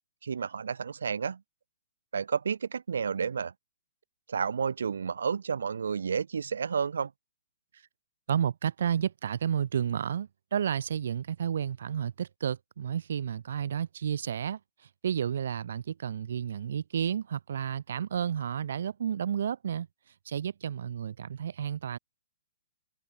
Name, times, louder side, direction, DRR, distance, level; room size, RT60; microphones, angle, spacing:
voice 1, 0.2-1.4 2.1-3.5 4.3-7.1, right 6 dB, 85° right, 6.1 m, -31 dB
voice 2, 8.3-14.6 15.0-19.9 20.3-22.0, right 8 dB, 65° right, 3.8 m, -31 dB
hypercardioid pair, 150°, 0 cm